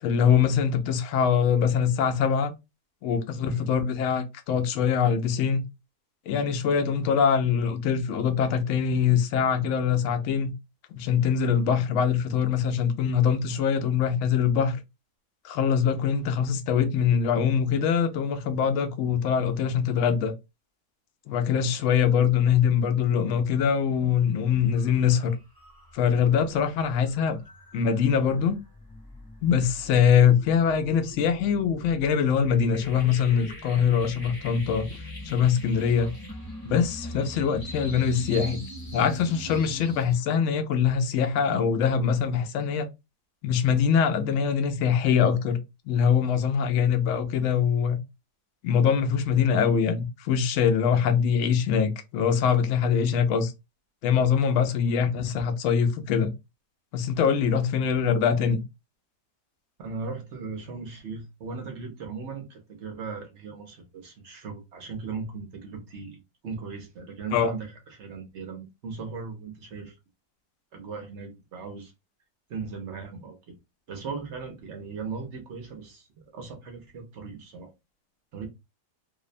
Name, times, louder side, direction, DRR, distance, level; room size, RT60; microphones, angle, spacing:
voice 1, 0.0-2.5 3.0-5.6 6.3-10.5 10.9-14.8 15.4-20.3 21.3-25.3 25.9-27.4 27.7-28.6 29.4-34.9 35.2-36.1 36.6-38.6 38.9-42.9 43.4-45.6 45.9-48.0 48.6-53.5 54.0-56.3 56.9-58.6 67.3-67.5, left 7 dB, 75° left, 0.7 m, -23 dB
voice 2, 3.3-3.7 54.8-54.9 59.8-70.0 70.7-71.9 72.5-73.6 73.9-77.7 78.3-78.5, right 4 dB, 60° right, 0.7 m, -38 dB
sound 1, 24.1-24.3 24.7-40.2, equal, 20° left, 0.6 m, -42 dB
2.7 x 2.1 x 2.4 m
omnidirectional pair, 1.7 m